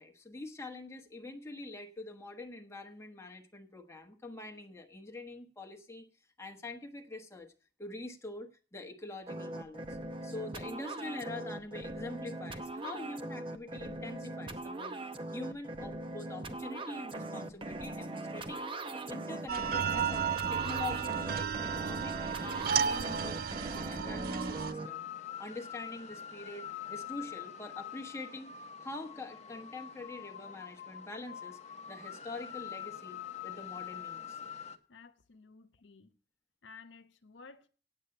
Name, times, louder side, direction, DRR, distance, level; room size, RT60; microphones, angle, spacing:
voice 1, 0.0-6.1 6.4-7.5 7.8-15.0 15.3-18.6 18.9-28.5 28.8-31.6 31.9-34.4, left 2 dB, 15° left, 1.2 m, -45 dB
sound 1, 9.3-24.9, right 2 dB, 30° right, 0.8 m, -40 dB
sound 2, 19.5-24.7, right 7 dB, 55° right, 0.4 m, -33 dB
sound 3, 23.9-34.8, left 9 dB, 40° left, 0.8 m, -45 dB
voice 2, 34.9-36.1 36.6-37.7, left 4 dB, 85° left, 0.8 m, -54 dB
8.9 x 8.4 x 7.8 m
head